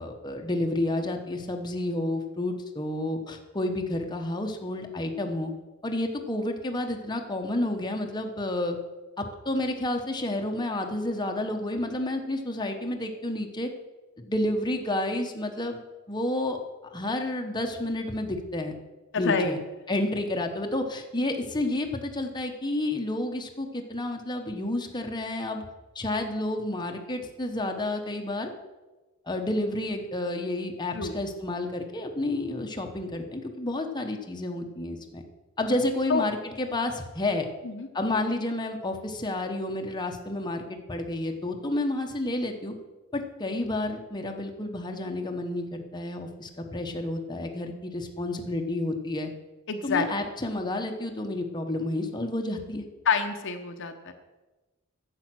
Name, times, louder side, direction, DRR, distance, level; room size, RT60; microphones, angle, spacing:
voice 1, 0.0-5.5 5.8-8.8 9.2-13.7 14.2-15.8 16.1-16.6 16.8-18.7 19.2-19.6 19.9-25.6 25.9-28.5 29.3-35.2 35.6-37.5 37.9-42.7 43.1-49.3 49.8-52.9, left 1 dB, 20° left, 3 dB, 1.0 m, -30 dB
voice 2, 19.1-19.5 30.9-31.2 36.1-36.2 37.6-37.9 49.7-50.3 53.0-54.1, left 5 dB, 60° left, 6 dB, 0.9 m, -27 dB
10.5 x 7.7 x 6.2 m, 1.2 s
head